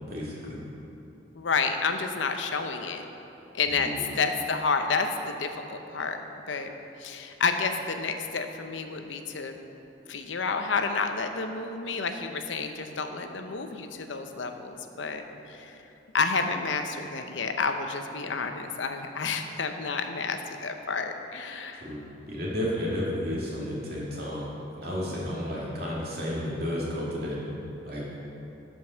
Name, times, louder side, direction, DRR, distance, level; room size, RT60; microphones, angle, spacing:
voice 1, 0.1-0.6 3.7-4.0 21.7-24.5 24.8-27.4 27.9-28.0, equal, 55° right, -6 dB, 2.4 m, -32 dB
voice 2, 1.3-3.1 3.5-6.2 6.5-6.7 7.0-9.6 10.1-15.8 16.1-21.9, left 4 dB, 85° left, 6 dB, 0.7 m, -30 dB
12.0 x 5.4 x 6.3 m, 3.0 s
head